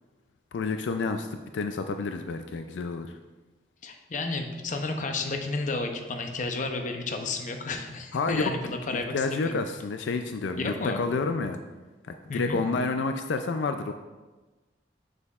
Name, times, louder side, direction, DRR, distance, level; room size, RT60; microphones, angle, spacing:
voice 1, 0.5-1.3 1.5-3.1 8.1-11.6 12.0-13.9, left 4 dB, 85° left, 7 dB, 0.4 m, -29 dB
voice 2, 3.8-9.6 10.6-11.0 12.3-12.6, left 3 dB, 45° left, 4 dB, 0.6 m, -32 dB
6.9 x 6.6 x 2.4 m, 1.2 s
head